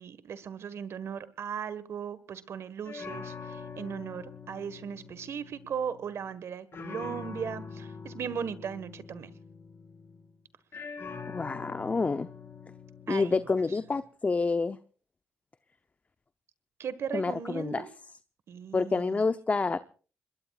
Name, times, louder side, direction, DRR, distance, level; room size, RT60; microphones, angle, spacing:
voice 1, 0.0-9.3 13.1-13.5 16.8-17.9 18.5-19.2, right 7 dB, 65° right, 14 dB, 1.5 m, -37 dB
sound 1, 2.9-6.4 6.7-10.3 10.7-14.0, left 5 dB, 55° left, 2.8 m, -44 dB
voice 2, 11.3-12.3 13.1-14.8 17.1-17.8 18.7-19.8, left 4 dB, 30° left, 11 dB, 0.7 m, -28 dB
26.5 x 21.0 x 2.4 m, 0.38 s
supercardioid pair, 60°, 5 cm